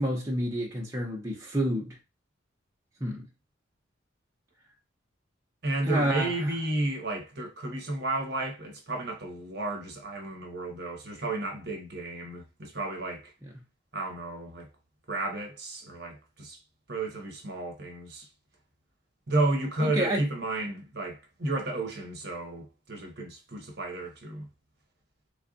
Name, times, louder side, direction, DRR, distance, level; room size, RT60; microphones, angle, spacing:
voice 1, 0.0-2.0 3.0-3.2 5.9-6.5 19.8-20.2, equal, 15° right, 0.7 m, -29 dB
voice 2, 5.6-13.3 13.9-14.7 15.1-16.6 16.9-18.3 19.3-24.5, right 2 dB, 55° right, 1.0 m, -32 dB
3.4 x 2.3 x 3.8 m
head